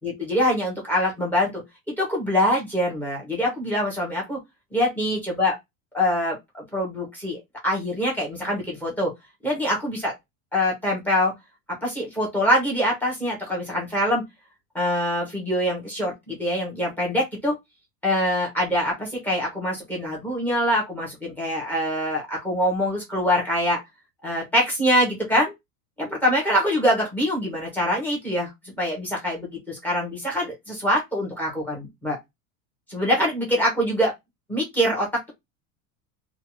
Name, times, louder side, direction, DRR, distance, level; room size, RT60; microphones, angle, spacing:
voice 1, 0.0-1.6 2.0-4.4 4.7-5.5 5.9-9.1 9.4-10.1 10.5-11.3 11.8-14.2 14.7-17.5 18.0-23.8 24.2-25.5 26.0-28.5 28.8-32.2 32.9-34.1 34.5-35.3, equal, 5° left, 0.7 m, -24 dB
2.6 x 2.3 x 2.9 m
cardioid pair, 175°, 41 cm